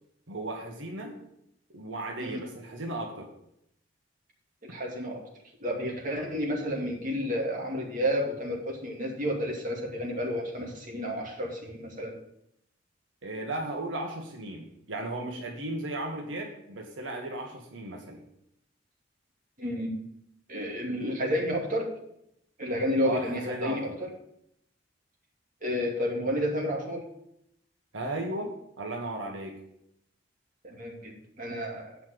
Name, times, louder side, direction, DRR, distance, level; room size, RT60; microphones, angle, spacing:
voice 1, 0.3-1.1 1.7-3.3 4.7-4.8 13.2-18.2 23.0-23.9 27.9-28.5 28.8-29.6, right 1 dB, 90° right, 1 dB, 1.6 m, -35 dB
voice 2, 4.6-5.2 5.6-12.1 19.6-19.9 20.5-21.9 22.6-23.9 25.6-27.0 30.6-31.9, equal, 45° right, -1 dB, 2.4 m, -31 dB
8.4 x 5.7 x 7.8 m, 0.77 s
head